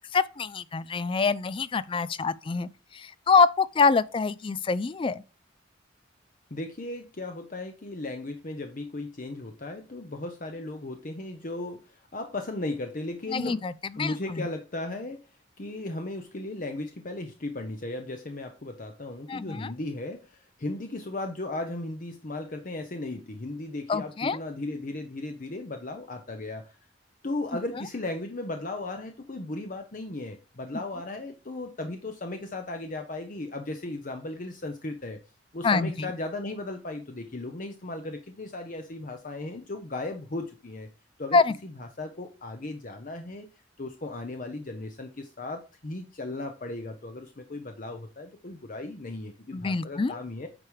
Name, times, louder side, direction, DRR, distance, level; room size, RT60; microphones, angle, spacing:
voice 1, 0.1-5.2 13.3-13.7 14.0-14.5 19.3-19.7 23.9-24.4 35.6-35.9 41.3-41.5 49.5-50.1, left 4 dB, 25° left, 0.3 m, -25 dB
voice 2, 6.5-13.6 14.0-15.2 15.6-26.8 27.2-35.2 35.5-40.9 41.2-43.5 43.8-50.5, left 2 dB, 45° left, 0.8 m, -36 dB
8.7 x 4.9 x 4.8 m
head